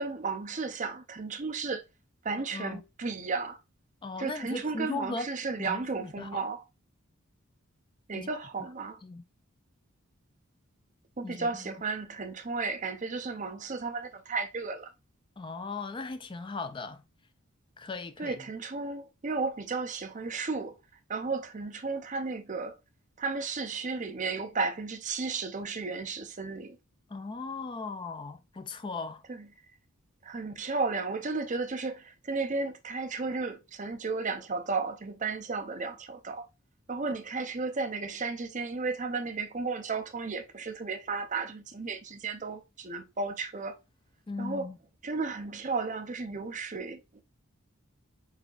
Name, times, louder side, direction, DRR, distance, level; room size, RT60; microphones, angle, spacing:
voice 1, 0.0-1.8 2.2-3.6 4.2-6.6 8.1-9.0 11.2-14.9 18.2-20.8 21.1-22.8 23.2-26.8 29.3-29.5 30.2-36.4 36.9-43.8 44.4-44.7 45.0-47.2, right 4 dB, 35° right, 0.6 m, -34 dB
voice 2, 4.0-5.3 5.6-6.3 8.1-8.3 8.6-8.7 9.0-9.2 11.2-11.7 15.4-17.0 17.8-18.5 27.1-29.2 44.3-44.8, left 3 dB, 25° left, 0.3 m, -38 dB
4.1 x 3.8 x 2.4 m
head